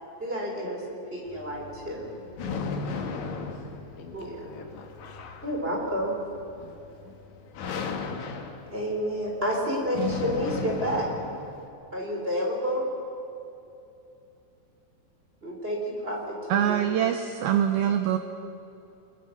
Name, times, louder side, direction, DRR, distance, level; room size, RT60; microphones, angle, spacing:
voice 1, 0.2-2.1 4.1-4.3 5.4-6.2 8.7-11.1 11.9-12.9 15.4-16.9, equal, 15° right, -1 dB, 3.5 m, -30 dB
sound 1, 1.3-11.7, left 5 dB, 60° left, 2.1 m, -36 dB
voice 2, 2.6-3.6 4.0-5.3 6.6-7.2, left 5 dB, 85° left, 3 dB, 4.3 m, -47 dB
voice 3, 16.5-18.2, right 10 dB, 80° right, 7 dB, 2.2 m, -24 dB
27.0 x 21.0 x 5.9 m, 2.8 s
omnidirectional pair, 5.2 m